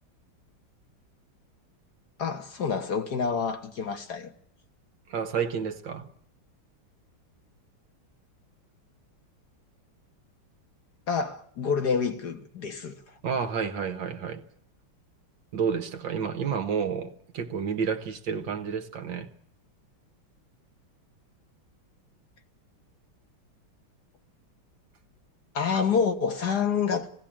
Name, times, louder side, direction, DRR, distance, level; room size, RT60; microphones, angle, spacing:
voice 1, 2.2-4.3 11.1-13.1 25.5-27.1, left 6 dB, 55° left, 1.8 m, -28 dB
voice 2, 5.1-6.1 13.2-14.4 15.5-19.3, right 6 dB, 70° right, 1.9 m, -30 dB
19.5 x 16.0 x 8.8 m
omnidirectional pair, 2.2 m